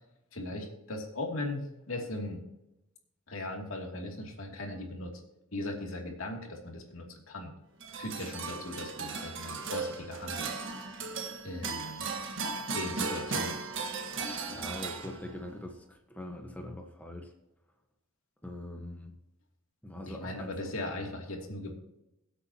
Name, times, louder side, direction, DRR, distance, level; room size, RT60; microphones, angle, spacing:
voice 1, 0.3-2.4 3.3-5.2 5.5-7.5 8.0-10.6 11.4-12.0 12.7-13.6 20.1-21.8, left 2 dB, 75° left, 1 dB, 2.7 m, -38 dB
sound 1, 7.8-15.5, right 4 dB, 60° right, 1.6 m, -36 dB
voice 2, 14.5-17.3 18.4-19.1 19.8-20.5, left 1 dB, 5° left, 2 dB, 1.2 m, -42 dB
22.5 x 8.4 x 2.9 m, 0.90 s
head